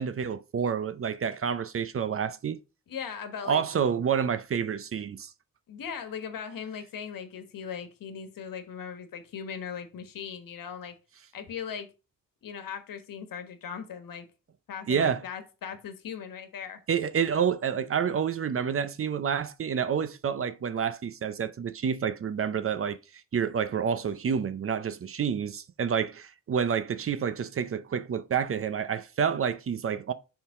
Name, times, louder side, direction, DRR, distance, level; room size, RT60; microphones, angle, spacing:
voice 1, 0.0-2.6 3.4-5.3 14.9-15.2 16.9-23.0 23.3-30.1, right 7 dB, 40° right, 0.6 m, -28 dB
voice 2, 2.9-3.6 5.7-10.9 11.3-11.9 12.4-14.3 14.7-16.8, left 7 dB, 80° left, 1.4 m, -39 dB
6.8 x 3.8 x 4.9 m
wide cardioid pair, 160°, 33 cm